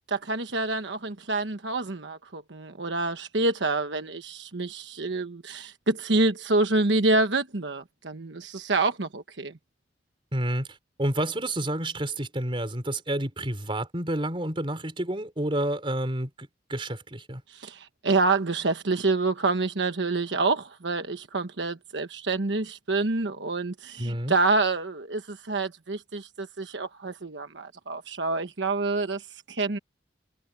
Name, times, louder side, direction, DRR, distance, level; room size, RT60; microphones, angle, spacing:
voice 1, 0.1-9.5 17.5-29.8, right 3 dB, 75° right, 1.2 m, -27 dB
voice 2, 10.3-16.3 16.7-17.4 24.0-24.3, right 1 dB, 30° right, 4.1 m, -29 dB
head